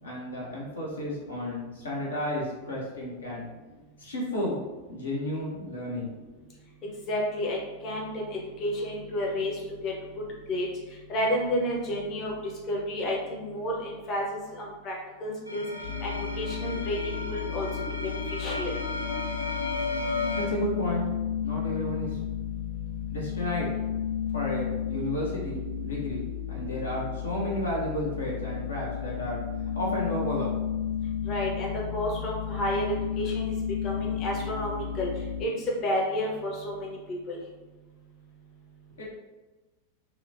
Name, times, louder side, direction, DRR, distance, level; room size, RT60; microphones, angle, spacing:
voice 1, 0.0-3.5 4.0-4.6 4.9-6.1 20.1-21.0 21.4-22.2 23.1-23.7 24.3-29.4 29.7-30.5 39.0-39.1, left 1 dB, 70° left, -3 dB, 0.5 m, -32 dB
voice 2, 7.1-9.5 9.8-9.9 10.5-10.7 11.1-12.3 12.7-14.9 15.2-15.6 16.0-17.7 18.0-18.8 31.3-33.5 33.8-35.1 35.4-35.5 35.8-37.4, left 1 dB, 35° left, -2 dB, 0.6 m, -31 dB
sound 1, 15.5-20.5, left 2 dB, 90° right, 0.3 m, -34 dB
sound 2, 15.8-35.4, left 8 dB, 55° left, 1.4 m, -33 dB
2.9 x 2.0 x 2.6 m, 1.2 s
figure-of-eight pair, 90°, 0 cm